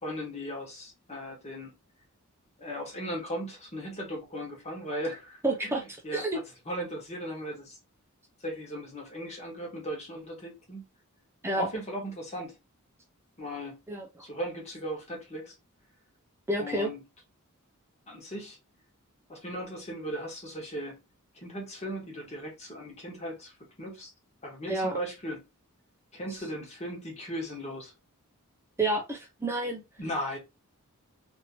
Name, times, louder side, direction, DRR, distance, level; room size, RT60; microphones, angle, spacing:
voice 1, 0.0-1.7 2.6-7.8 8.4-10.8 11.6-12.5 13.4-13.7 14.2-15.5 16.6-17.0 18.1-18.6 19.3-21.0 21.3-24.1 24.4-25.4 26.1-27.9 30.0-30.4, equal, 30° left, 1.2 m, -37 dB
voice 2, 5.4-5.8 6.1-6.4 11.4-11.7 13.9-14.1 16.5-16.9 24.7-25.0 28.8-29.8, right 2 dB, 10° right, 0.4 m, -29 dB
2.9 x 2.6 x 2.8 m
head